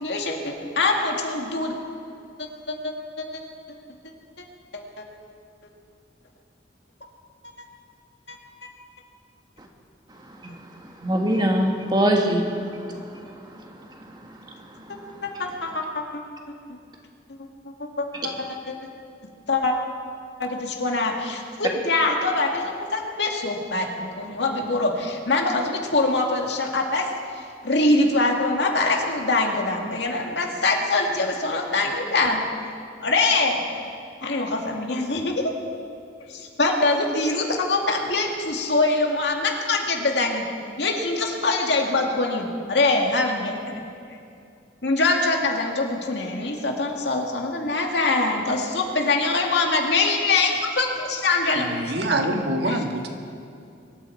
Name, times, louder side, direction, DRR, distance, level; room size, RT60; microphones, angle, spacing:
voice 1, 0.0-1.8 2.4-3.4 5.0-5.1 8.3-8.7 15.2-16.2 17.8-18.8 19.5-19.8 20.4-32.4 33.0-33.6 34.2-35.5 36.2-40.5 40.8-43.6 44.8-51.7 52.7-52.8, left 2 dB, 80° left, 1 dB, 2.1 m, -24 dB
voice 2, 11.0-13.2 14.2-14.3 14.9-15.0, equal, 25° right, 1 dB, 1.7 m, -23 dB
voice 3, 51.5-53.1, right 1 dB, 70° right, 3 dB, 1.7 m, -25 dB
23.5 x 13.0 x 4.6 m, 2.5 s
head